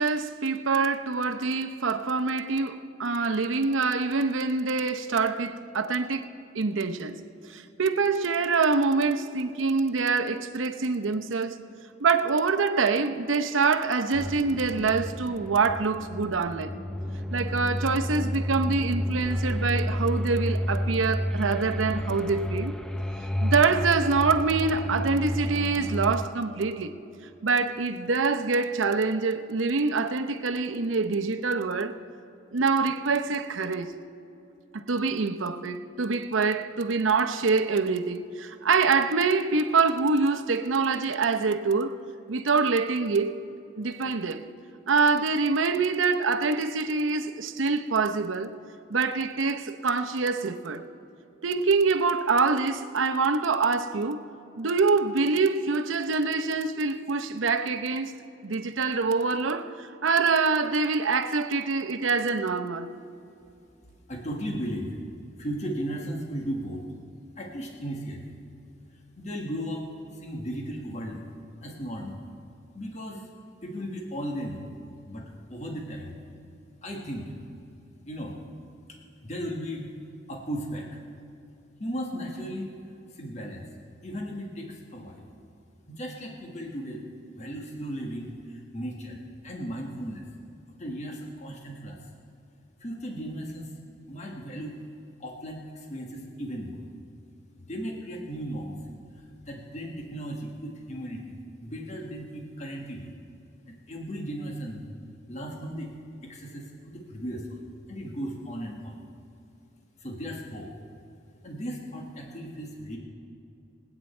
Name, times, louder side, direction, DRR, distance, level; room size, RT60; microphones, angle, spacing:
voice 1, 0.0-6.3 6.5-7.1 7.5-11.6 12.0-16.7 17.3-22.7 23.4-26.9 27.4-32.0 32.5-33.9 34.7-42.0 42.3-43.3 43.8-44.4 44.9-48.5 48.9-50.8 51.4-54.2 54.6-58.2 58.4-62.9, right 4 dB, 85° right, 0.8 m, -25 dB
sound 1, 14.1-26.3, equal, 5° left, 0.5 m, -31 dB
voice 2, 64.1-64.9 65.4-66.8 67.4-68.3 69.2-69.9 70.1-71.2 71.6-72.2 72.7-73.3 73.6-74.7 75.1-76.2 76.8-77.3 78.0-78.4 79.2-79.9 80.3-81.0 81.8-82.7 83.1-83.7 84.0-85.3 85.9-87.0 87.3-90.2 90.8-92.0 92.8-93.7 94.1-94.8 95.2-96.8 97.6-98.8 99.1-103.2 103.7-104.8 105.3-105.9 106.2-107.6 107.9-109.0 110.0-110.7 111.4-113.0, equal, 35° left, 1.6 m, -36 dB
26.5 x 9.0 x 4.4 m
head